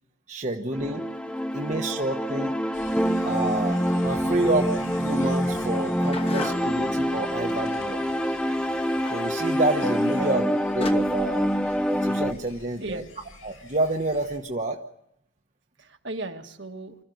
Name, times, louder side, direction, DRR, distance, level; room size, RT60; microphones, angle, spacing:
voice 1, 0.3-1.1 1.5-2.5 3.2-8.0 9.1-10.4 10.7-11.5 11.9-13.0 13.4-14.8, right 2 dB, 35° right, 2 dB, 1.2 m, -28 dB
sound 1, 0.7-12.3, equal, 5° left, 0.8 m, -26 dB
voice 2, 0.9-1.5 6.0-6.3 7.3-7.8 10.2-10.3 12.8-13.1 15.8-17.0, right 2 dB, 60° right, 4 dB, 1.7 m, -38 dB
sound 2, 2.7-14.4, left 2 dB, 85° left, 5.7 m, -45 dB
sound 3, 5.5-6.9 9.1-9.4 10.4-10.5 10.8-10.9, left 3 dB, 30° left, 1.4 m, -35 dB
25.5 x 14.0 x 9.4 m, 0.75 s
head